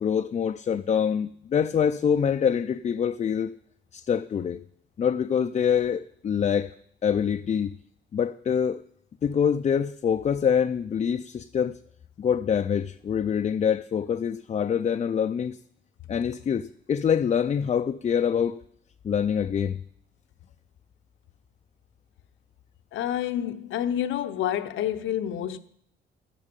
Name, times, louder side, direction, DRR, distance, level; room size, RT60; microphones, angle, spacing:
voice 1, 0.0-3.6 3.9-4.6 5.0-6.7 7.0-7.7 8.1-8.8 9.2-11.8 12.2-15.6 16.1-18.6 19.0-19.8, left 7 dB, 35° left, 0.4 m, -25 dB
voice 2, 22.9-25.6, left 10 dB, 80° left, 0.8 m, -28 dB
12.0 x 9.9 x 5.3 m
cardioid pair, 90°, 20 cm